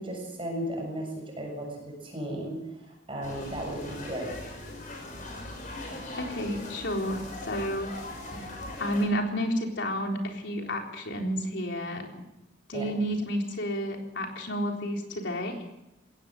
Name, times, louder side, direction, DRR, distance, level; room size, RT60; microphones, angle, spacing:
voice 1, 0.0-4.4 12.7-12.9, right 1 dB, 25° right, 0 dB, 7.2 m, -35 dB
sound 1, 3.2-9.1, left 2 dB, 40° left, 6.4 m, -40 dB
voice 2, 6.2-7.2 7.5-7.9 8.8-12.0 12.7-15.6, equal, 65° left, 2 dB, 3.8 m, -30 dB
21.0 x 17.5 x 7.7 m, 0.92 s
head